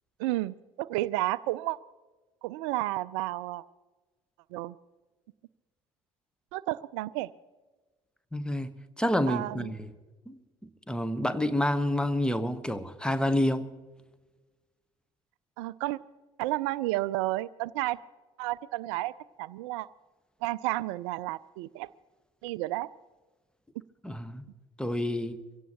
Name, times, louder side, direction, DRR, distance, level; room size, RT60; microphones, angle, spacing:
voice 1, 0.2-1.8 2.4-3.6 4.5-4.7 6.5-7.3 9.3-9.7 15.6-16.0 16.4-18.0 18.4-19.1 19.4-19.9 20.4-21.9 22.4-22.9, right 17 dB, 60° right, 0.4 m, -31 dB
voice 2, 8.3-8.7 9.0-9.9 10.3-10.4 10.9-13.7 24.0-24.4 24.8-25.4, left 1 dB, 5° left, 1.2 m, -28 dB
24.0 x 17.0 x 3.0 m
figure-of-eight pair, 60°, 18 cm